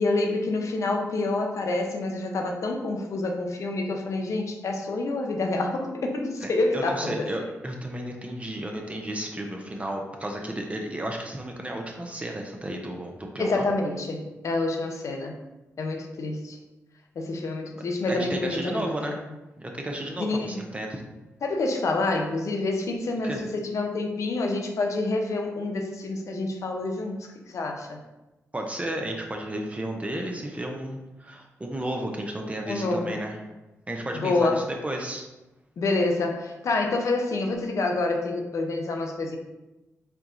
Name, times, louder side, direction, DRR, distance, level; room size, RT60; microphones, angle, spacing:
voice 1, 0.0-7.2 13.4-15.4 15.8-16.6 17.2-19.1 20.2-20.6 21.4-28.0 32.6-33.2 34.1-34.6 35.8-39.4, left 2 dB, 65° left, 2 dB, 0.7 m, -27 dB
voice 2, 6.4-13.7 17.7-19.2 19.6-21.0 23.2-23.4 28.5-33.4 33.9-35.3, right 1 dB, 25° right, 1 dB, 0.7 m, -33 dB
4.5 x 2.4 x 3.9 m, 1.0 s
cardioid pair, 55°, 6 cm